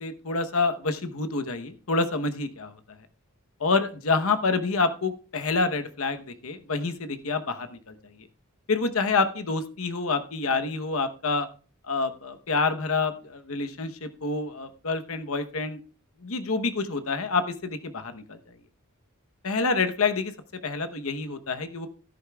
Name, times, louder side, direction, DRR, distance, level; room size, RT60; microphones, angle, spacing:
voice 1, 0.0-2.7 3.6-8.2 8.7-11.5 11.9-15.8 16.2-18.4 19.4-20.3 20.6-21.9, left 4 dB, 70° left, 9 dB, 0.9 m, -27 dB
16.5 x 10.5 x 2.3 m, 0.38 s
head